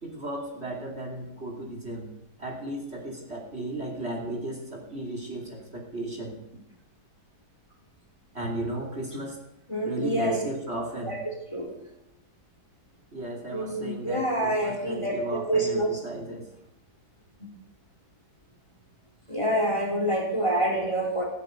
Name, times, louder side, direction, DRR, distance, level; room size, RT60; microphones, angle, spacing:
voice 1, 0.0-2.1 2.4-6.4 8.3-9.4 9.8-11.2 13.1-16.5, right 1 dB, 35° right, -1 dB, 3.1 m, -35 dB
voice 2, 9.7-10.4 11.0-11.2 11.5-11.7 13.5-15.9 19.3-21.2, right 1 dB, 15° left, 0 dB, 3.2 m, -27 dB
16.0 x 9.6 x 8.0 m, 0.88 s
omnidirectional pair, 1.9 m